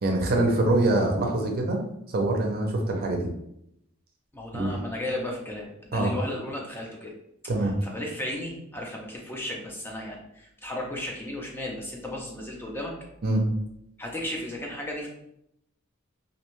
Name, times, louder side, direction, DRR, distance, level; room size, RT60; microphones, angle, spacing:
voice 1, 0.0-1.8 2.1-3.3 4.5-4.7 5.9-6.1 7.5-7.7 13.2-13.4, right 2 dB, 45° right, 2 dB, 0.5 m, -24 dB
voice 2, 4.3-7.1 7.8-12.9 14.0-15.1, left 1 dB, 10° left, -2 dB, 0.4 m, -34 dB
2.5 x 2.2 x 3.0 m, 0.77 s
head